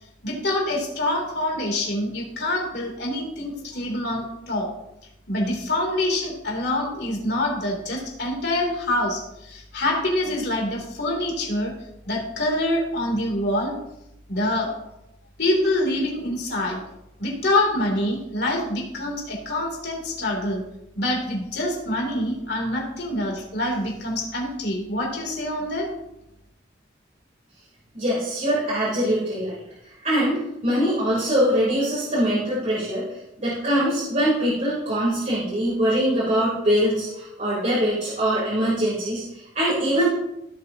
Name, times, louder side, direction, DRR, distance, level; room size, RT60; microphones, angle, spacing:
voice 1, 0.2-4.7 5.3-11.7 12.0-13.7 14.3-14.7 15.4-16.8 17.2-20.6 20.9-25.9, left 1 dB, 60° left, 0 dB, 3.1 m, -25 dB
voice 2, 27.9-29.6 30.0-33.1 33.4-40.1, equal, 40° right, -9 dB, 3.8 m, -23 dB
16.0 x 7.9 x 2.9 m, 0.84 s
head